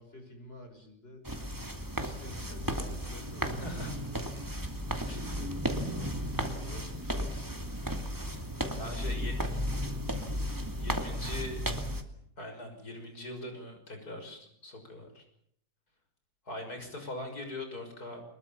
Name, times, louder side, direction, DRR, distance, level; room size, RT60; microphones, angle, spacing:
voice 1, 0.0-1.3 1.8-3.8 5.1-7.6 8.5-10.0 10.8-11.5, left 1 dB, 35° left, 5 dB, 6.0 m, -51 dB
sound 1, 1.2-12.0, equal, 10° right, 2.4 m, -34 dB
voice 2, 3.6-3.9 5.1-5.2 8.8-9.3 10.8-11.6 12.4-15.2 16.5-18.2, left 1 dB, 65° left, 6 dB, 6.7 m, -41 dB
24.0 x 22.0 x 7.2 m, 0.69 s
omnidirectional pair, 1.8 m